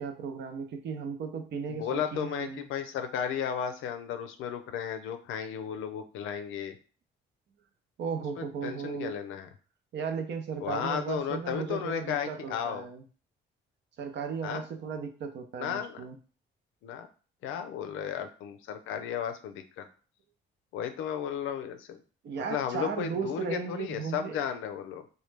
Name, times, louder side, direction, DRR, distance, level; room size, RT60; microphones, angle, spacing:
voice 1, 0.0-2.6 8.0-9.2 9.9-13.0 14.0-16.2 22.2-24.4, right 6 dB, 65° right, 5 dB, 0.7 m, -35 dB
voice 2, 1.7-6.8 8.4-9.5 10.6-12.9 14.4-14.6 15.6-16.0 16.8-17.1 17.4-19.9 20.7-22.0 22.5-25.0, left 8 dB, 90° left, 7 dB, 0.5 m, -34 dB
3.1 x 2.2 x 3.2 m, 0.38 s
cardioid pair, 90°, 20 cm